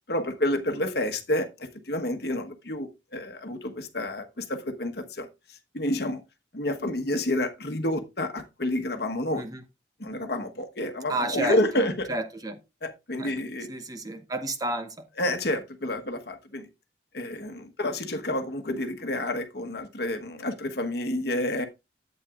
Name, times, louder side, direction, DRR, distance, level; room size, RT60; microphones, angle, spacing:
voice 1, 0.1-6.2 6.5-9.4 10.0-12.1 12.8-13.7 15.2-16.7 17.1-21.6, left 1 dB, 55° left, 1.2 m, -29 dB
voice 2, 11.1-12.6 13.2-13.3 13.7-15.0, right 2 dB, 20° right, 0.8 m, -31 dB
11.5 x 8.3 x 2.4 m
head